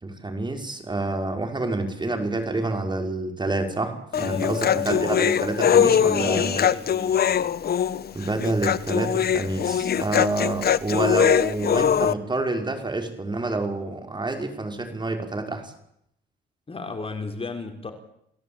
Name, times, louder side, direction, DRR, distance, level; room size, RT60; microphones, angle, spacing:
voice 1, 0.0-6.6 8.1-15.7, right 2 dB, 20° right, 5 dB, 5.5 m, -28 dB
Human voice, 4.1-12.1, left 8 dB, 50° left, 1.2 m, -22 dB
voice 2, 4.1-4.6 6.1-7.5 16.7-17.9, left 3 dB, 30° left, 6 dB, 4.2 m, -35 dB
29.5 x 18.0 x 9.0 m, 0.75 s
cardioid pair, 90°, 20 cm